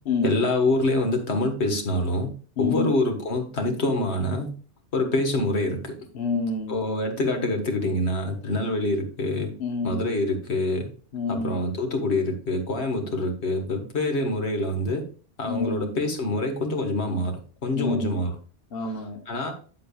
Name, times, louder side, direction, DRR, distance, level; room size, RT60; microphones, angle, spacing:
voice 1, 0.2-2.3 2.6-4.5 4.9-6.0 6.7-9.5 9.8-10.9 11.3-15.0 15.4-18.3 19.3-19.5, left 2 dB, 75° left, 4 dB, 1.7 m, -26 dB
voice 2, 2.6-2.9 6.1-6.8 9.6-10.0 11.1-11.6 15.5-15.9 17.7-18.2 18.7-19.2, left 3 dB, 60° left, 3 dB, 1.2 m, -28 dB
8.6 x 7.7 x 2.3 m, 0.37 s
omnidirectional pair, 1.2 m